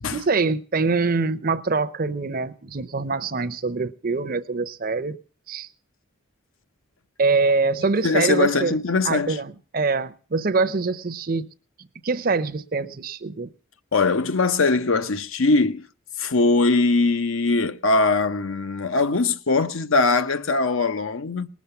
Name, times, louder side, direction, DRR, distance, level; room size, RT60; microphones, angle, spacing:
voice 1, 0.1-5.2 5.5-5.7 7.2-8.8 9.0-11.5 12.0-13.5, right 4 dB, 40° right, 0.6 m, -24 dB
voice 2, 8.0-9.4 13.9-15.9 16.2-21.5, left 3 dB, 70° left, 0.8 m, -21 dB
20.0 x 7.2 x 6.8 m
head